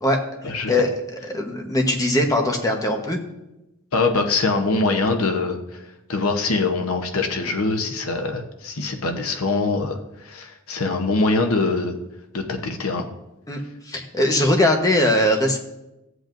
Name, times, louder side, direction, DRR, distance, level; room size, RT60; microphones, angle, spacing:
voice 1, 0.0-3.2 13.5-15.6, left 1 dB, 15° left, 2 dB, 1.2 m, -21 dB
voice 2, 3.9-5.8 6.1-11.9 12.3-13.1, left 3 dB, 80° left, 4 dB, 1.0 m, -23 dB
15.0 x 8.0 x 2.6 m, 0.93 s
head